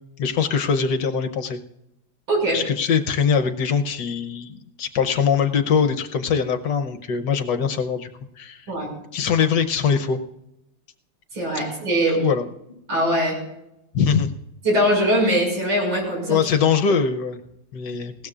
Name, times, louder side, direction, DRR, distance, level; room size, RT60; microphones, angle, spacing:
voice 1, 0.0-1.6 2.5-8.1 8.4-8.7 9.1-10.2 11.5-11.6 12.2-12.4 13.9-14.3 16.3-17.4 17.7-18.1, left 6 dB, 65° left, 7 dB, 1.4 m, -22 dB
voice 2, 2.3-2.6 8.7-8.9 11.3-12.2 12.9-13.4 14.6-16.5, equal, 80° right, -1 dB, 6.7 m, -21 dB
20.0 x 17.0 x 2.5 m, 0.85 s
omnidirectional pair, 2.1 m